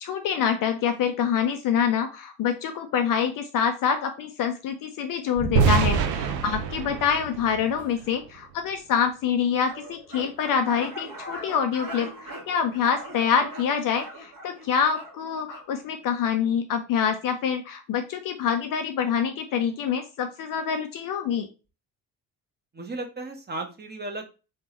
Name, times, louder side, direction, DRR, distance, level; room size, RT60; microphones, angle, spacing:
voice 1, 0.0-21.5, left 7 dB, 40° left, 7 dB, 0.6 m, -26 dB
sound 1, 5.3-6.9 7.8-8.0 13.8-13.9, right 2 dB, 90° right, 1.4 m, -33 dB
sound 2, 5.6-8.5, right 6 dB, 70° right, 0.7 m, -25 dB
voice 2, 6.6-6.9 22.7-24.3, right 2 dB, 20° right, 3 dB, 1.1 m, -35 dB
sound 3, 9.6-15.7, right 1 dB, 40° right, 1.5 m, -41 dB
3.9 x 3.5 x 3.1 m, 0.32 s
figure-of-eight pair, 45°, 50 cm